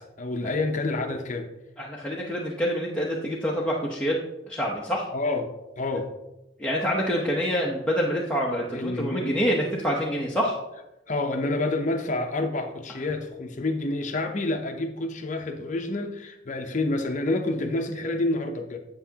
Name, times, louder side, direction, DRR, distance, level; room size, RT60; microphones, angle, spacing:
voice 1, 0.0-1.5 5.1-6.1 8.7-9.4 11.1-18.8, left 2 dB, 45° left, 5 dB, 0.7 m, -28 dB
voice 2, 1.8-4.2 4.5-5.1 6.6-10.5, equal, 5° left, -5 dB, 0.8 m, -26 dB
8.1 x 8.0 x 2.9 m, 0.94 s
head